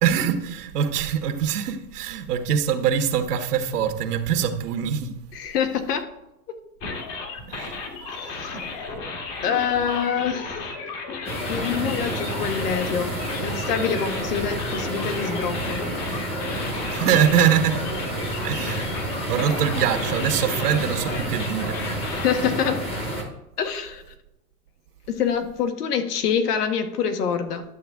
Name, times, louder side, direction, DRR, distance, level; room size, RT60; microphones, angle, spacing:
voice 1, 0.0-5.1 7.5-7.7 16.9-17.8 18.4-18.9 19.3-21.8, right 8 dB, 75° right, 1.3 m, -23 dB
voice 2, 5.3-6.0 8.4-8.5 9.4-10.7 11.5-15.8 22.1-22.8 23.6-24.0 25.1-27.6, left 7 dB, 75° left, 1.4 m, -26 dB
sound 1, 6.8-22.3, left 4 dB, 35° left, 1.4 m, -34 dB
sound 2, 11.3-23.2, right 1 dB, 10° left, 1.1 m, -30 dB
11.0 x 7.0 x 3.5 m
supercardioid pair, 155°, 46 cm